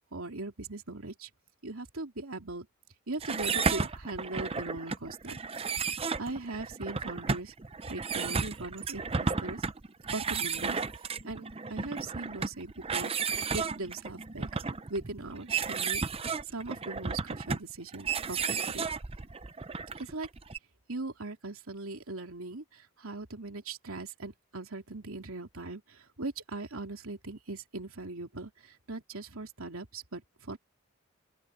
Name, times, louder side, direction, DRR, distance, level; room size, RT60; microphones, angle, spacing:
voice 1, 0.1-1.3 1.6-2.7 3.1-5.7 6.2-7.5 7.9-9.6 10.1-10.8 11.2-16.0 16.4-18.9 20.0-20.3 20.9-30.6, right 2 dB, 75° right, 2.9 m, -40 dB
sound 1, 3.2-20.6, right 5 dB, 25° right, 0.6 m, -33 dB
open air
head